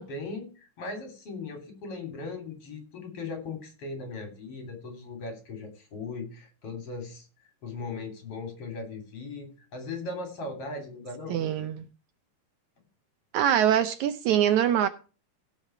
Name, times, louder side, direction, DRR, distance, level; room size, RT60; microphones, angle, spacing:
voice 1, 0.0-7.3 7.6-11.4, left 3 dB, 45° left, 3.8 m, -38 dB
voice 2, 11.3-11.9 13.3-14.9, right 10 dB, 75° right, 1.9 m, -23 dB
17.0 x 5.7 x 4.5 m
omnidirectional pair, 3.7 m